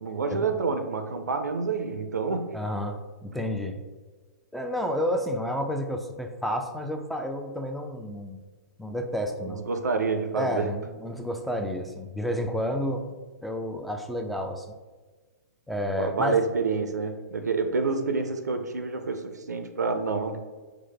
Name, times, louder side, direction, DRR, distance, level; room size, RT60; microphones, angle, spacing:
voice 1, 0.0-2.6 9.4-10.7 15.9-20.4, right 4 dB, 85° right, 7 dB, 0.4 m, -28 dB
voice 2, 2.5-3.8 4.5-8.4 8.8-9.7 10.3-13.1 13.4-14.7 15.7-16.4, equal, ahead, 4 dB, 0.3 m, -30 dB
4.6 x 2.0 x 3.1 m, 1.3 s
hypercardioid pair, 115°, 9 cm